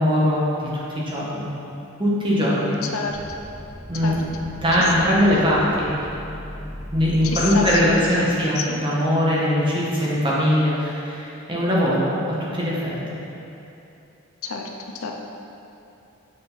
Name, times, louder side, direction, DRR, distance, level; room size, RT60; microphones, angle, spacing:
voice 1, 0.0-1.5 2.0-2.8 3.9-4.2 4.6-5.9 6.9-12.9, equal, 25° right, -7 dB, 1.5 m, -21 dB
sound 1, 3.1-8.3, equal, ahead, 1.2 m, -37 dB
voice 2, 7.2-8.7 14.4-14.7 14.9-15.1, left 4 dB, 85° left, 2 dB, 0.7 m, -29 dB
8.0 x 5.2 x 4.1 m, 2.8 s
head